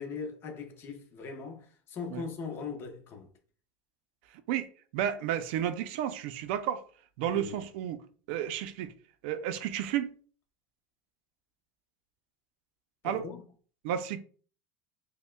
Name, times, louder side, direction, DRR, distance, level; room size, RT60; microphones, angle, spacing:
voice 1, 0.0-3.3 7.3-7.5 13.0-13.4, left 5 dB, 40° left, 0.8 m, -40 dB
voice 2, 4.5-6.8 7.2-8.0 8.3-8.9 9.2-10.1 13.0-13.3 13.8-14.2, right 10 dB, 70° right, 0.4 m, -32 dB
5.3 x 2.1 x 2.2 m
supercardioid pair, 135°, 6 cm